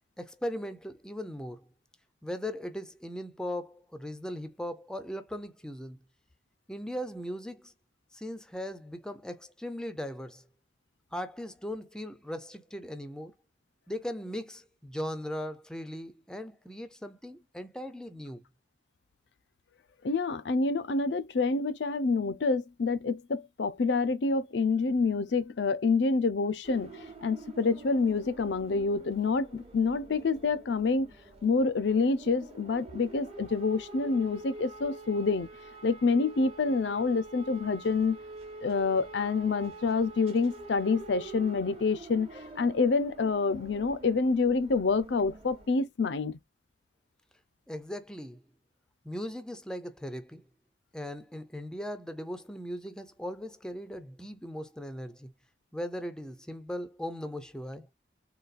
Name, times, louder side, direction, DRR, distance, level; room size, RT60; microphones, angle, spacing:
voice 1, 0.2-1.6 2.2-6.0 6.7-7.7 8.1-10.4 11.1-13.3 13.9-18.4 47.7-48.4 49.0-50.4 50.9-55.3 55.7-57.9, equal, 5° left, 0.5 m, -38 dB
voice 2, 20.0-31.1 31.4-35.5 35.8-38.2 38.6-42.3 42.6-46.4, left 4 dB, 70° left, 0.5 m, -27 dB
sound 1, 26.6-45.7, right 2 dB, 35° right, 0.8 m, -47 dB
3.9 x 2.3 x 2.4 m
head